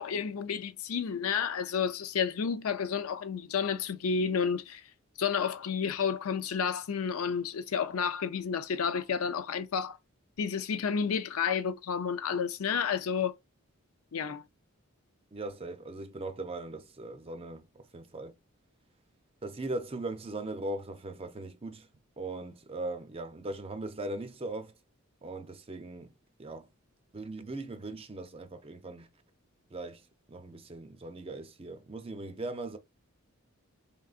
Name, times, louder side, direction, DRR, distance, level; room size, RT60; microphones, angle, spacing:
voice 1, 0.0-4.8 5.2-10.0 10.4-13.3 14.1-14.4, left 6 dB, 80° left, 0.5 m, -31 dB
voice 2, 15.3-18.4 19.4-21.9 22.2-24.7 25.2-26.7 27.1-29.1 29.7-32.8, right 2 dB, 25° right, 0.5 m, -39 dB
3.8 x 3.7 x 2.4 m
head